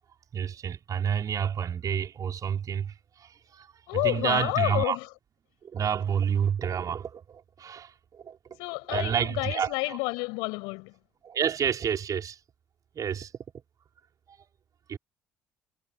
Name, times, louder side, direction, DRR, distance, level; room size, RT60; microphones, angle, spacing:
voice 1, 0.3-5.0 5.6-8.6 8.9-10.0 11.2-12.4 12.9-13.3 14.3-14.4 14.9-15.0, right 8 dB, 45° right, 4.5 m, -29 dB
voice 2, 3.9-5.1 8.6-10.9, left 29 dB, 70° left, 6.9 m, -29 dB
figure-of-eight pair, 50°, 8 cm